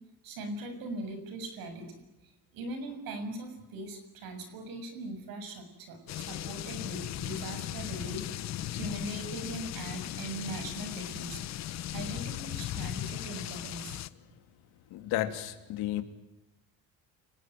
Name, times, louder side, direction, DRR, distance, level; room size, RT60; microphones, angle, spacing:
voice 1, 0.2-2.0 2.5-8.3 8.8-11.4 11.9-14.0, right 2 dB, 65° right, 8 dB, 6.9 m, -40 dB
sound 1, 6.1-14.1, left 13 dB, 45° left, 0.9 m, -37 dB
voice 2, 14.9-16.0, left 14 dB, 85° left, 8 dB, 2.9 m, -32 dB
29.5 x 19.5 x 9.3 m, 1.0 s
cardioid pair, 175°, 37 cm